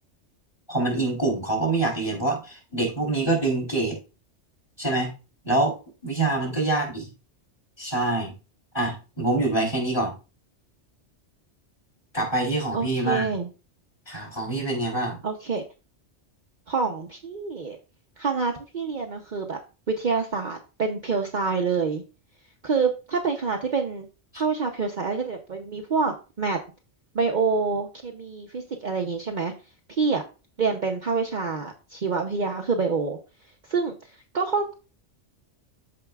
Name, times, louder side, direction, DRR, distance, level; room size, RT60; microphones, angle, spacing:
voice 1, 0.7-4.0 4.8-5.1 5.4-5.8 6.0-7.1 7.8-8.3 8.7-10.1 12.1-13.3 14.1-15.2 24.3-24.4, right 2 dB, 20° left, -1 dB, 3.6 m, -25 dB
voice 2, 12.7-13.5 15.2-15.6 16.7-17.8 18.2-19.6 19.9-22.0 22.6-24.1 24.4-26.6 27.1-29.5 29.9-30.2 30.6-33.2 33.7-34.7, right 4 dB, 45° right, 2 dB, 0.9 m, -27 dB
13.5 x 4.8 x 2.3 m, 0.32 s
omnidirectional pair, 1.2 m